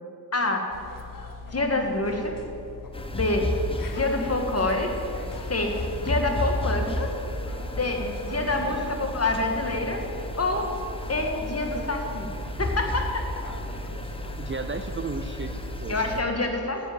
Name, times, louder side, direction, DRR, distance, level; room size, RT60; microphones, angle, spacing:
voice 1, 0.3-0.7 1.5-2.4 3.1-3.5 3.9-4.9 5.4-7.2 7.4-10.0 10.4-10.7 11.1-12.3 12.6-13.4 15.9-16.9, left 2 dB, 40° left, 3 dB, 1.6 m, -27 dB
sound 1, 0.7-16.4, left 3 dB, 55° left, 1.0 m, -41 dB
sound 2, 2.9-16.2, left 1 dB, 15° left, 0.9 m, -33 dB
voice 2, 8.6-9.0 14.3-16.2, right 4 dB, 30° right, 8 dB, 0.6 m, -35 dB
10.0 x 8.5 x 7.1 m, 2.7 s
wide cardioid pair, 80°, 39 cm